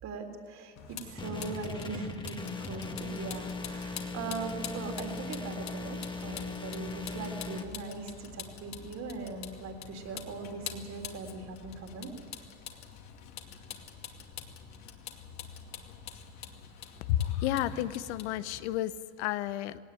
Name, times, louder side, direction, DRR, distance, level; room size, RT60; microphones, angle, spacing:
voice 1, 0.0-12.1, right 4 dB, 55° right, 4 dB, 3.6 m, -40 dB
Vehicle, 0.8-18.7, left 8 dB, 55° left, 2.3 m, -46 dB
sound 1, 1.2-7.6, left 3 dB, 15° left, 1.7 m, -39 dB
voice 2, 17.1-19.8, left 12 dB, 75° left, 14 dB, 1.0 m, -31 dB
18.5 x 18.0 x 9.1 m, 2.1 s
supercardioid pair, 95°, 33 cm